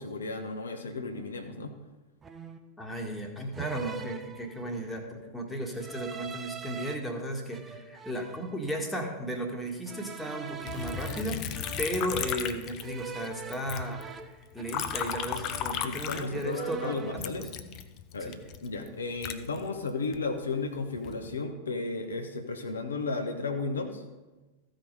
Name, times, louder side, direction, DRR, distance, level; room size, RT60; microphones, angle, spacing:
voice 1, 0.0-1.7 11.2-11.3 15.8-17.4 18.1-24.0, left 3 dB, 70° left, 5 dB, 0.9 m, -34 dB
sound 1, 1.1-1.4 2.2-2.8 3.5-4.9 5.7-7.0 7.5-9.1 9.9-12.2 12.8-15.1 15.3-16.0 16.3-17.3, right 6 dB, 20° right, 0.6 m, -43 dB
voice 2, 2.8-17.0 17.4-17.5 18.2-18.4, equal, 5° left, 1 dB, 1.6 m, -35 dB
Liquid, 10.7-13.3 13.5-16.7 17.2-20.2 20.8-21.3, left 9 dB, 35° left, 0.6 m, -35 dB
14.5 x 5.1 x 5.4 m, 1.1 s
figure-of-eight pair, 90°, 0 cm